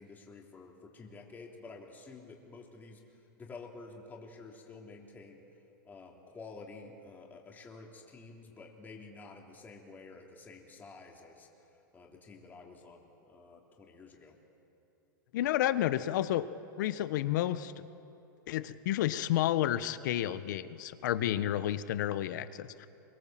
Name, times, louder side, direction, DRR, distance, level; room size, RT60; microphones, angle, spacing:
voice 1, 0.0-3.0 3.4-5.4 5.8-14.4, left 3 dB, 15° left, 0 dB, 3.3 m, -50 dB
voice 2, 15.3-16.5 16.8-17.7 18.5-22.9, left 12 dB, 60° left, 14 dB, 1.2 m, -31 dB
24.5 x 24.0 x 7.6 m, 2.8 s
hypercardioid pair, 140°, 11 cm